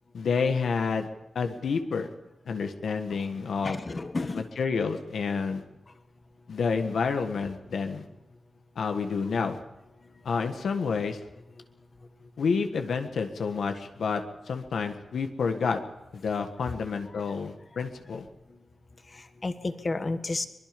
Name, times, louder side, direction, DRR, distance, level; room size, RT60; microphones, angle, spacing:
voice 1, 0.1-1.1 1.3-2.1 2.4-3.8 4.3-5.6 6.5-8.1 8.7-9.6 10.2-11.2 12.4-15.8 16.1-18.2, left 5 dB, 85° left, 6 dB, 1.6 m, -29 dB
voice 2, 2.9-4.5 17.1-17.2 19.1-20.5, left 3 dB, 30° left, 9 dB, 1.4 m, -33 dB
23.5 x 21.5 x 5.3 m, 0.99 s
wide cardioid pair, 175°, 0 cm